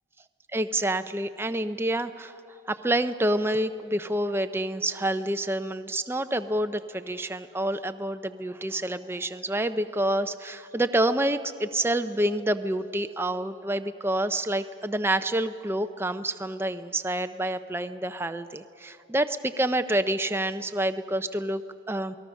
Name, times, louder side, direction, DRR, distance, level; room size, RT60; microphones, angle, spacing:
voice 1, 0.5-22.2, right 1 dB, 10° right, 10 dB, 0.5 m, -28 dB
28.0 x 19.5 x 6.3 m, 2.6 s
head